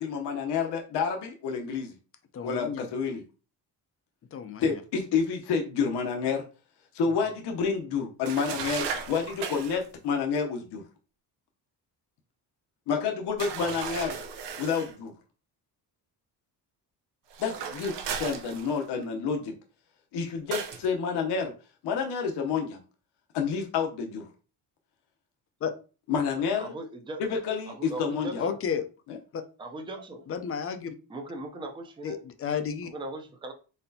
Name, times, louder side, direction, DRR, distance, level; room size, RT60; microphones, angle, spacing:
voice 1, 0.0-1.9 2.4-3.2 4.6-6.5 6.9-10.8 12.9-14.2 14.6-15.1 17.4-19.5 20.1-21.5 21.8-22.8 23.3-24.2 26.1-26.7 27.2-28.4 29.1-29.2, left 5 dB, 75° left, 2 dB, 0.9 m, -29 dB
voice 2, 2.3-2.9 4.3-4.8 25.6-25.7 28.4-28.8 29.3-29.4 30.3-31.0 32.0-32.9, left 7 dB, 35° left, 8 dB, 0.5 m, -32 dB
sound 1, 8.3-9.9 13.4-15.0 17.3-19.0 20.5-20.9, right 6 dB, 85° right, 0.8 m, -36 dB
voice 3, 26.6-27.2 27.7-28.6 29.6-30.2 31.1-32.2 32.8-33.5, right 1 dB, 10° right, 3 dB, 0.5 m, -39 dB
4.2 x 4.1 x 2.7 m, 0.34 s
cardioid pair, 170°, 41 cm